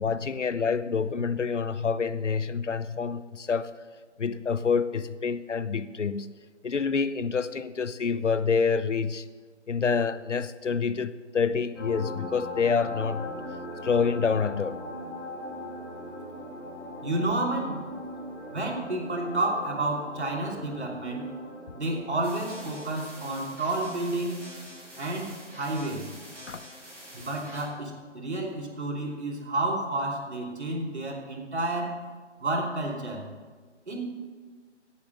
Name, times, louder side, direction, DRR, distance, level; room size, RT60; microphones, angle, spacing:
voice 1, 0.0-3.7 4.2-6.3 6.6-9.2 9.7-13.3 13.8-14.8 26.5-26.6, left 5 dB, 80° left, 0.8 m, -27 dB
sound 1, 11.7-29.0 30.5-30.6, left 3 dB, 20° left, 2.8 m, -43 dB
sound 2, 12.5-22.7, right 1 dB, 45° right, 2.7 m, -44 dB
voice 2, 17.0-17.9 18.5-21.3 21.7-24.5 25.0-26.1 27.1-32.1 32.4-33.3 33.9-34.0, right 2 dB, 65° right, 3.1 m, -30 dB
sound 3, 22.2-27.6, equal, 5° right, 3.5 m, -46 dB
13.5 x 8.6 x 6.4 m
figure-of-eight pair, 160°, 36 cm